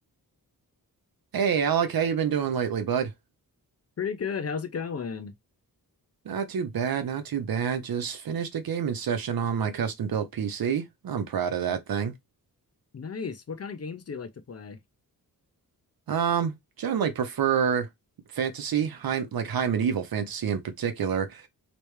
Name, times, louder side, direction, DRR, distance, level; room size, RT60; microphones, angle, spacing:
voice 1, 1.3-3.1 6.2-12.1 16.1-16.5 16.8-17.9 18.3-21.5, right 7 dB, 70° right, 0.8 m, -27 dB
voice 2, 4.0-5.3 12.9-14.8, left 6 dB, 40° left, 0.6 m, -34 dB
3.3 x 3.0 x 3.1 m
wide cardioid pair, 125°, 36 cm